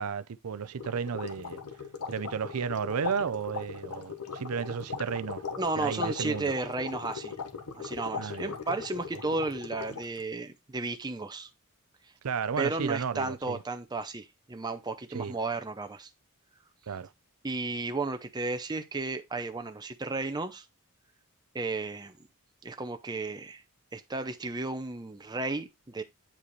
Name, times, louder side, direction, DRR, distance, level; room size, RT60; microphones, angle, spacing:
voice 1, 0.0-1.6 2.1-5.4 5.8-6.5 8.2-8.5 12.2-13.6 15.1-15.3 16.9-17.1, right 6 dB, 75° right, 0.5 m, -33 dB
sound 1, 0.8-10.2, left 5 dB, 85° left, 1.1 m, -39 dB
voice 2, 5.6-7.3 7.7-11.5 12.6-16.1 17.4-20.6 21.5-22.1 22.6-23.6 23.9-26.0, right 3 dB, 20° right, 0.6 m, -33 dB
8.6 x 4.9 x 3.1 m
head